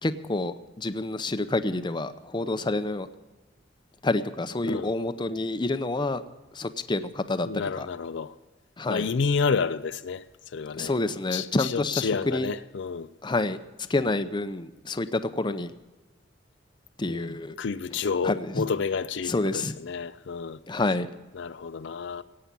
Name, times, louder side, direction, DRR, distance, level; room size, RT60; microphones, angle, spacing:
voice 1, 0.0-3.1 4.0-6.2 6.6-7.5 7.8-7.9 8.8-9.1 10.8-12.5 13.2-13.6 13.9-15.7 17.0-17.5 18.2-18.5 19.3-19.7 20.7-21.1, left 2 dB, 25° left, 0.7 m, -28 dB
voice 2, 4.6-4.9 7.5-8.3 8.9-10.2 10.5-11.0 11.3-13.1 17.1-20.8 21.3-22.2, left 5 dB, 65° left, 0.5 m, -30 dB
17.5 x 8.6 x 6.9 m
head